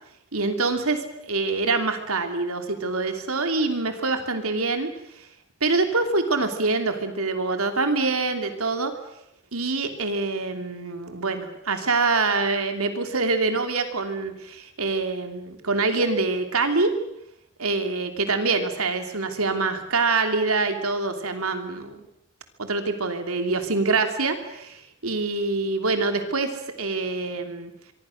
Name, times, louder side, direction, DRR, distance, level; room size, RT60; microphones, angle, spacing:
voice 1, 0.3-4.9 5.2-5.3 5.6-8.9 9.5-16.9 17.6-22.0 22.6-27.7, right 3 dB, 75° right, 6 dB, 3.1 m, -25 dB
25.5 x 23.5 x 6.6 m, 0.80 s
head